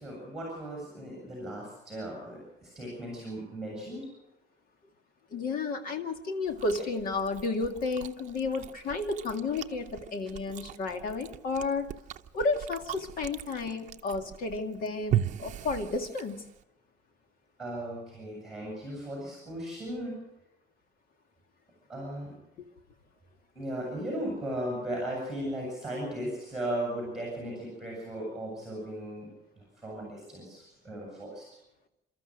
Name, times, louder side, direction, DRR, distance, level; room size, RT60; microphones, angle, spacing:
voice 1, 0.0-4.1 17.6-20.2 21.9-22.3 23.5-29.3 29.6-31.4, right 1 dB, ahead, -2 dB, 7.9 m, -37 dB
voice 2, 5.3-11.9 12.3-16.4 22.6-22.7, left 3 dB, 55° left, 6 dB, 2.3 m, -32 dB
Chewing mastication, 6.5-16.6, right 11 dB, 45° right, 0.7 m, -38 dB
29.5 x 13.5 x 6.5 m, 0.87 s
cardioid pair, 175°, 17 cm